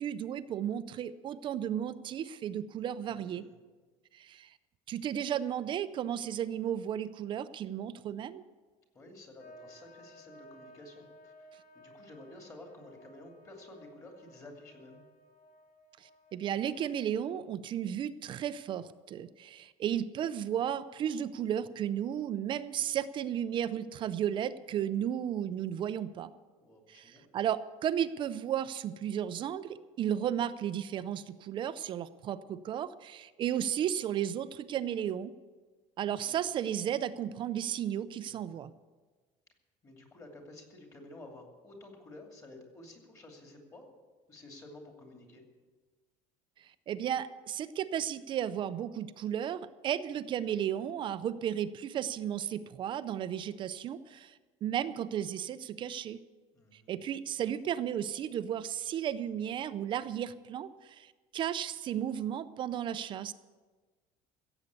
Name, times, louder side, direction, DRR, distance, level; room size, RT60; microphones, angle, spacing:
voice 1, 0.0-3.5 4.1-4.5 4.9-8.4 16.0-26.3 26.9-35.3 36.0-38.7 46.6-56.2 56.7-63.3, right 10 dB, 35° right, 14 dB, 0.5 m, -34 dB
voice 2, 3.0-3.5 8.9-11.5 11.7-15.0 26.6-27.3 36.2-36.4 38.3-38.4 39.8-43.8 44.3-45.4 56.5-56.9, left 2 dB, 20° left, 2 dB, 2.6 m, -52 dB
sound 1, 9.4-17.0, equal, 80° left, 2.7 m, -57 dB
16.0 x 8.0 x 8.2 m, 1.3 s
cardioid pair, 165°, 14 cm